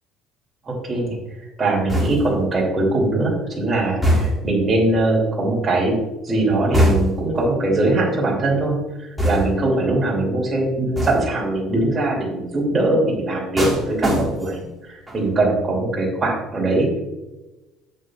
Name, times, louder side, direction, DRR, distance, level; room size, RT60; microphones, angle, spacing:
voice 1, 0.7-1.2 1.6-6.0 6.2-8.9 9.2-17.0, right 2 dB, 20° right, -3 dB, 3.1 m, -21 dB
sound 1, 1.9-2.5 4.0-4.6 6.7-7.3 9.2-9.7 11.0-11.4 13.6-14.7 15.1-15.4, equal, ahead, 1.8 m, -22 dB
11.0 x 8.7 x 2.5 m, 1.1 s
cardioid pair, 150°, 0 cm